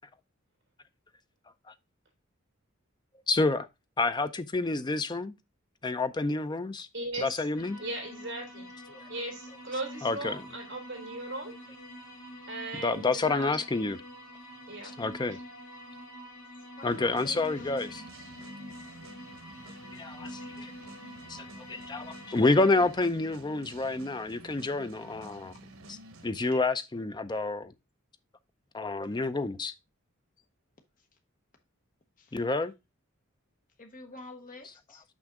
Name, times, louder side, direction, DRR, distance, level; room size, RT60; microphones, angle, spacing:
voice 1, 3.3-3.7 4.0-5.3 5.8-6.9 7.2-7.8 8.9-9.0 10.0-10.4 12.8-14.0 15.0-15.4 16.8-18.0 19.9-20.7 21.3-25.5 25.9-26.0 26.2-27.7 28.7-29.7 32.3-32.7, left 3 dB, 20° left, 0.5 m, -29 dB
voice 2, 6.9-7.5 7.8-8.7 9.1-11.6 12.5-13.6 14.7-14.9 15.3-15.4, right 2 dB, 55° right, 3.3 m, -38 dB
sound 1, 7.5-22.9, equal, 70° left, 2.2 m, -46 dB
voice 3, 16.8-18.1 32.2-32.4 33.8-35.0, left 2 dB, 40° left, 0.8 m, -47 dB
sound 2, 16.9-26.6, right 1 dB, 90° right, 1.1 m, -50 dB
6.1 x 5.6 x 3.6 m
head